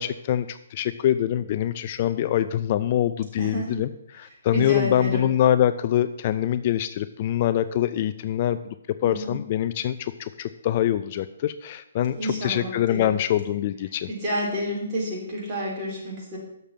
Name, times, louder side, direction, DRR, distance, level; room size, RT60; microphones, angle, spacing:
voice 1, 0.0-14.1, left 11 dB, 40° left, 12 dB, 0.4 m, -24 dB
voice 2, 4.5-5.2 9.0-9.3 12.2-13.1 14.1-16.4, equal, 25° right, -5 dB, 3.8 m, -29 dB
6.7 x 6.5 x 7.3 m, 0.77 s
hypercardioid pair, 150°, 0 cm